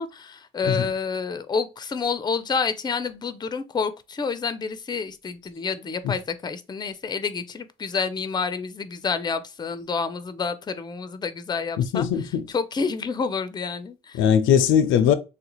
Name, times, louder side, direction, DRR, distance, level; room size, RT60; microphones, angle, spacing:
voice 1, 0.0-14.2, left 5 dB, 20° left, 0.4 m, -29 dB
voice 2, 11.8-12.4 14.1-15.1, left 8 dB, 90° left, 0.4 m, -20 dB
3.2 x 2.4 x 2.9 m
cardioid pair, 90°, 20 cm